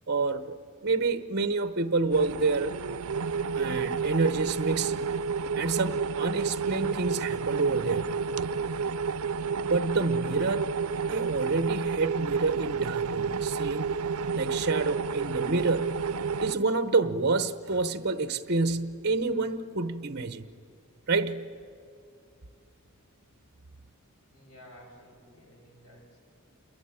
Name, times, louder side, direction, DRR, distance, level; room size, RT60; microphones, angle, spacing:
voice 1, 0.1-2.7 3.6-5.0 5.6-8.1 9.7-10.7 11.1-13.9 14.3-16.0 16.4-20.5 21.1-21.4, right 3 dB, 50° right, 1.0 m, -28 dB
sound 1, 2.1-16.6, right 5 dB, 80° right, 0.6 m, -30 dB
voice 2, 24.3-26.2, equal, 85° left, 7.9 m, -53 dB
28.0 x 22.5 x 9.1 m
head